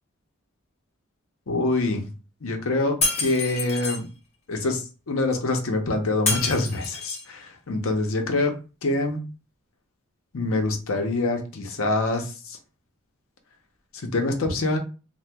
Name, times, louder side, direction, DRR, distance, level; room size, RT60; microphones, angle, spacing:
voice 1, 1.5-2.1 2.4-4.1 4.5-8.6 8.8-9.2 10.3-12.6 13.9-14.8, left 2 dB, 80° left, 0.7 m, -25 dB
Shatter, 3.0-4.0 6.3-7.3, left 3 dB, 30° left, 0.8 m, -27 dB
2.8 x 2.1 x 3.4 m
head